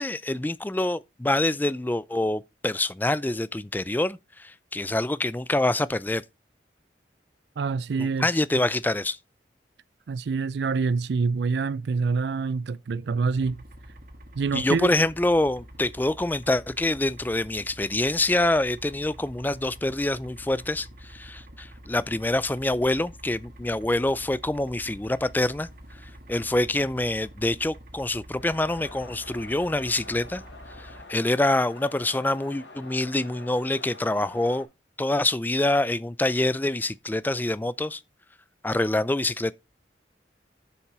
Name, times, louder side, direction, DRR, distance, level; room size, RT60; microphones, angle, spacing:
voice 1, 0.0-6.2 8.0-9.2 14.5-25.7 26.0-30.4 30.8-34.7 35.0-38.0 38.6-39.5, left 2 dB, 10° left, 0.4 m, -26 dB
voice 2, 7.6-8.3 10.1-13.6 14.4-14.9, right 4 dB, 65° right, 0.4 m, -26 dB
sound 1, 13.4-31.0, equal, 50° right, 1.6 m, -47 dB
sound 2, 28.4-34.6, left 3 dB, 80° left, 3.9 m, -46 dB
7.2 x 7.0 x 4.8 m
head